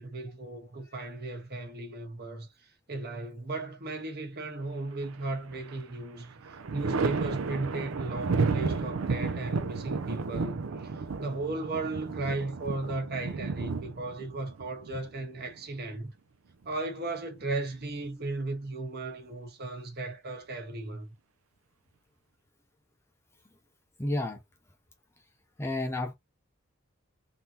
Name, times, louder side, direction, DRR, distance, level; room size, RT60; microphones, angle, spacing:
voice 1, 0.0-16.1 16.6-21.1, right 2 dB, 50° right, 1.3 m, -36 dB
Thunder, 5.0-5.8 6.2-15.8 17.2-18.1, right 4 dB, 70° right, 0.5 m, -32 dB
voice 2, 24.0-24.4 25.6-26.1, left 1 dB, 10° left, 0.5 m, -30 dB
3.6 x 2.7 x 2.8 m
head